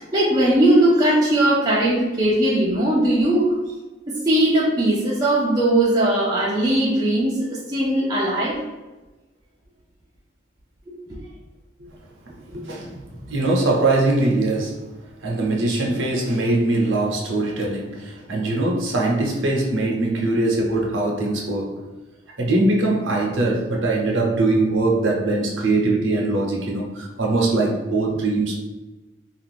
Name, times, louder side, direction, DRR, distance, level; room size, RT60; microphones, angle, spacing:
voice 1, 0.0-3.6 4.1-8.6 10.9-11.0, right 1 dB, 20° right, -6 dB, 0.5 m, -19 dB
voice 2, 12.5-14.9 15.2-21.8 22.4-28.6, right 2 dB, 75° right, -1 dB, 0.7 m, -22 dB
2.4 x 2.4 x 3.4 m, 1.2 s
head